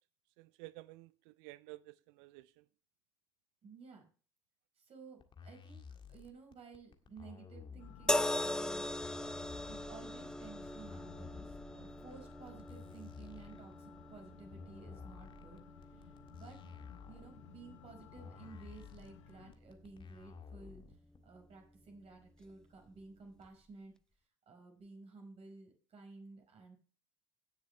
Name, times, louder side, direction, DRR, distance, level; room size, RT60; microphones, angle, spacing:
voice 1, 0.4-2.6, right 20 dB, 60° right, 0.4 m, -53 dB
voice 2, 3.6-4.1 4.8-5.8 6.1-8.9 9.2-9.3 9.6-15.6 15.9-16.6 17.1-20.8 21.2-23.9 24.5-26.7, right 4 dB, 40° right, 5.2 m, -54 dB
sound 1, 5.2-21.2, left 5 dB, 35° left, 1.8 m, -53 dB
sound 2, 7.8-19.5, left 11 dB, 75° left, 0.9 m, -59 dB
sound 3, 8.1-21.4 22.4-22.5, left 1 dB, 5° left, 0.7 m, -41 dB
17.0 x 7.6 x 3.2 m
hypercardioid pair, 65°, 15 cm